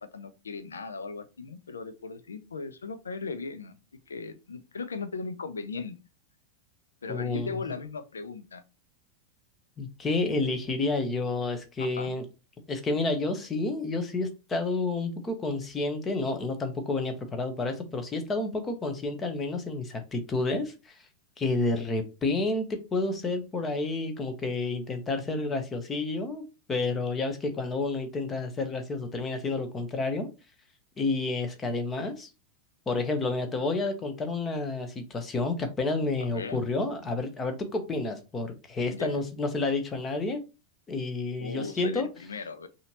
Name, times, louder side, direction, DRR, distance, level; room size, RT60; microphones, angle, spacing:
voice 1, 0.1-3.8 4.1-6.0 7.0-8.6 11.8-12.1 36.2-36.6 38.9-39.2 41.4-42.7, left 4 dB, 70° left, 11 dB, 0.5 m, -38 dB
voice 2, 7.1-7.5 9.8-12.2 12.7-20.9 21.4-26.4 26.7-30.3 31.0-32.3 32.9-40.4 40.9-42.1, left 3 dB, 20° left, 7 dB, 1.0 m, -30 dB
5.5 x 2.8 x 2.9 m, 0.29 s
figure-of-eight pair, 90°, 0 cm